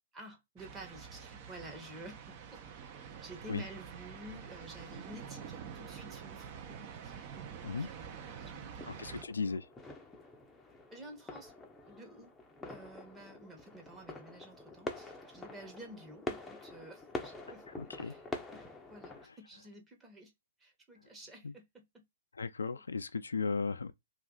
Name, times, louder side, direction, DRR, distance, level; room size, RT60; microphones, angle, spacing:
voice 1, 0.1-2.6 3.0-9.1 10.9-11.5 11.8-12.3 12.7-17.6 17.9-20.3 20.6-22.0, right 1 dB, 15° right, 1.0 m, -51 dB
sound 1, 0.6-9.2, right 7 dB, 40° right, 0.6 m, -47 dB
sound 2, 8.8-19.3, left 2 dB, 10° left, 0.6 m, -46 dB
voice 2, 8.9-9.7 17.7-18.2 21.4-21.5 22.3-23.9, left 4 dB, 85° left, 0.3 m, -36 dB
2.5 x 2.5 x 3.7 m
hypercardioid pair, 120°, 0 cm